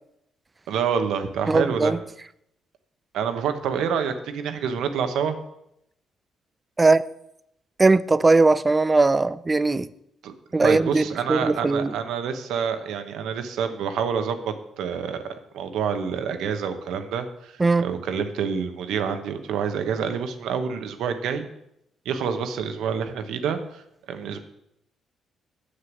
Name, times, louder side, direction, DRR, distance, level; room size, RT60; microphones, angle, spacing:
voice 1, 0.7-1.9 3.1-5.4 10.2-10.3 10.6-15.2 15.5-21.5 22.0-23.8 24.1-24.4, right 7 dB, 80° right, 1.1 m, -27 dB
voice 2, 1.5-2.0 6.8-7.0 7.8-9.9 10.5-11.0 11.3-11.9 17.6-17.9, right 3 dB, 20° right, 0.4 m, -19 dB
7.7 x 6.6 x 7.3 m
cardioid pair, 90°, 0 cm